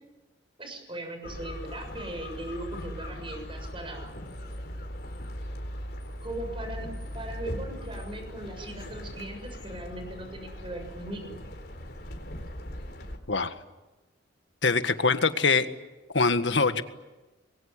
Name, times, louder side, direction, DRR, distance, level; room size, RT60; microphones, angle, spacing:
voice 1, 0.6-4.1 6.2-11.3, right 1 dB, 30° right, 5 dB, 7.0 m, -39 dB
sound 1, 1.2-13.2, equal, 55° left, 4.3 m, -39 dB
voice 2, 14.6-15.7 16.1-16.8, left 4 dB, 80° left, 9 dB, 1.7 m, -23 dB
26.5 x 22.5 x 9.9 m, 1.1 s
head